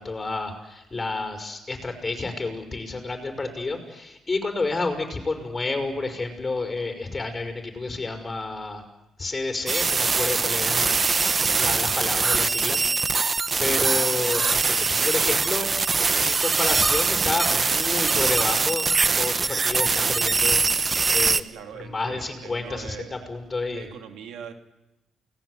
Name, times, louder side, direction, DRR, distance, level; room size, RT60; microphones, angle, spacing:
voice 1, 0.0-8.8 9.2-10.9 11.5-15.7 16.2-18.9 19.1-20.6 21.1-21.4 21.8-23.9, left 3 dB, 25° left, 5 dB, 5.7 m, -30 dB
sound 1, 9.7-21.4, right 4 dB, 35° right, 1.0 m, -22 dB
voice 2, 21.5-23.1 23.7-24.5, right 8 dB, 85° right, 5 dB, 2.7 m, -41 dB
29.5 x 19.0 x 8.1 m, 0.94 s
cardioid pair, 90°, 0 cm